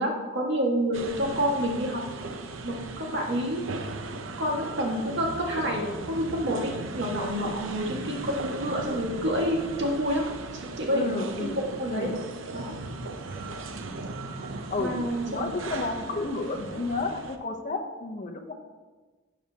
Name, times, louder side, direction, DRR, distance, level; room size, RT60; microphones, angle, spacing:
voice 1, 0.0-2.0 2.6-3.8 4.4-10.3 10.8-12.1 12.5-12.7 14.8-15.5, equal, 65° right, 0 dB, 1.8 m, -28 dB
sound 1, 0.9-17.4, right 3 dB, 90° right, 0.7 m, -38 dB
voice 2, 10.9-11.6 11.9-12.2 13.4-13.5 14.7-15.0 15.3-18.5, left 3 dB, 40° left, 4 dB, 0.9 m, -31 dB
12.0 x 7.3 x 2.9 m, 1.3 s
head